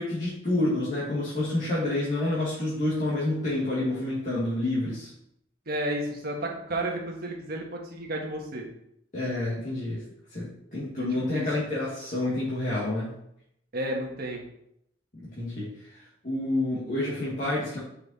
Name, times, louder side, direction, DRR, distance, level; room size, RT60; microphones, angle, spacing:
voice 1, 0.0-5.1 9.1-10.0 10.3-13.1 15.1-17.8, left 1 dB, 45° left, -8 dB, 1.9 m, -29 dB
voice 2, 5.7-8.7 11.0-11.5 13.7-14.4, right 1 dB, 55° right, 1 dB, 1.4 m, -32 dB
5.6 x 5.6 x 4.1 m, 0.76 s
head